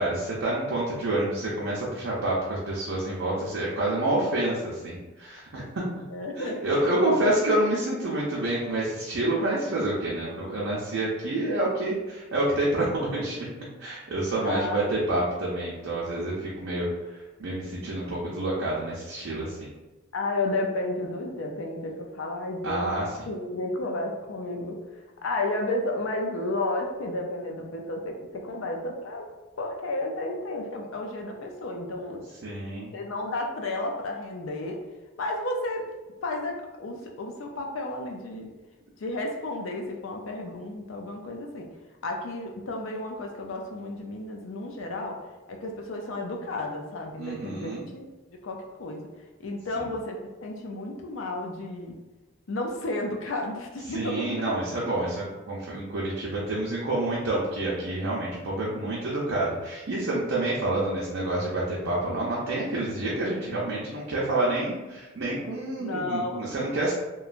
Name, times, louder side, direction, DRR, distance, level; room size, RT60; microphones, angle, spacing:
voice 1, 0.0-5.6 6.4-13.5 13.8-19.7 22.6-23.3 32.4-32.9 47.2-47.9 53.9-66.9, right 1 dB, 80° right, -6 dB, 0.6 m, -28 dB
voice 2, 6.1-6.6 7.0-7.3 14.4-14.9 20.1-22.9 23.3-28.1 28.4-29.2 29.6-32.3 32.9-34.8 35.2-35.8 36.2-38.5 39.0-41.7 42.0-45.2 45.5-48.1 48.4-49.0 49.4-51.9 52.5-54.4 65.8-66.5, left 2 dB, 80° left, 2 dB, 0.5 m, -32 dB
3.0 x 2.2 x 2.4 m, 1.1 s
head